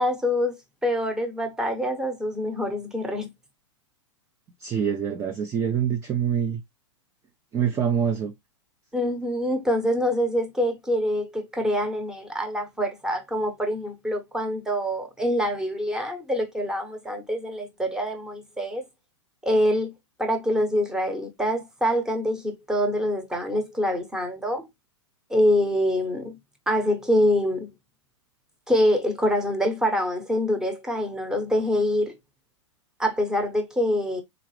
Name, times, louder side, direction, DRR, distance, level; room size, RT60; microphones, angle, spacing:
voice 1, 0.0-3.3 8.9-18.8 19.4-19.9 20.2-24.6 25.3-26.3 26.7-27.7 28.7-32.1 33.0-34.2, equal, 5° right, 0.9 m, -25 dB
voice 2, 4.6-6.6 7.5-8.3, right 8 dB, 20° right, 0.5 m, -25 dB
3.9 x 2.4 x 3.1 m
hypercardioid pair, 110°, 16 cm